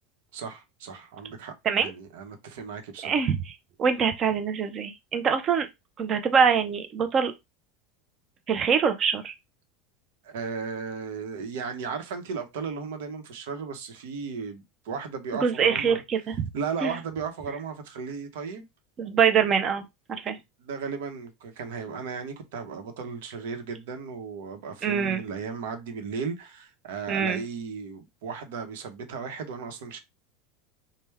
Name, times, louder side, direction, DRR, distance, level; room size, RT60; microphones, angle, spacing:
voice 1, 0.3-3.2 10.2-16.0 16.5-18.7 20.6-30.0, right 5 dB, 75° right, 0.9 m, -35 dB
voice 2, 3.0-3.5 3.8-5.7 6.0-7.3 8.5-9.3 15.4-16.5 16.8-16.9 19.0-19.8 20.1-20.4 24.8-25.2 27.1-27.4, right 6 dB, 25° right, 0.5 m, -24 dB
3.3 x 2.2 x 3.4 m
supercardioid pair, 165°, 0 cm